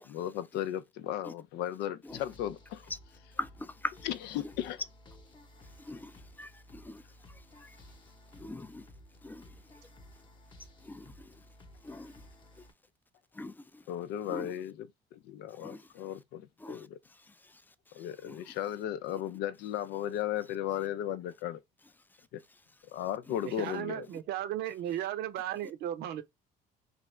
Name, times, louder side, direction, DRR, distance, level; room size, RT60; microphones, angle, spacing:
voice 1, 0.1-2.8 4.1-4.8 13.9-14.7 15.1-16.9 17.9-21.6 22.3-22.4 22.9-24.1, left 11 dB, 85° left, 0.5 m, -35 dB
sound 1, 2.1-12.7, left 1 dB, 25° left, 0.8 m, -55 dB
voice 2, 3.4-4.1 4.3-4.5 5.6-7.8 8.3-8.9 9.2-9.9 10.8-11.5 11.8-12.3 12.6-12.7 13.3-13.9 14.2-14.6 15.5-16.2 16.6-18.6 22.2-22.8 23.3-23.4, left 2 dB, 10° left, 0.3 m, -44 dB
voice 3, 23.4-26.2, right 11 dB, 75° right, 0.7 m, -35 dB
3.3 x 2.5 x 3.1 m
cardioid pair, 110°, 17 cm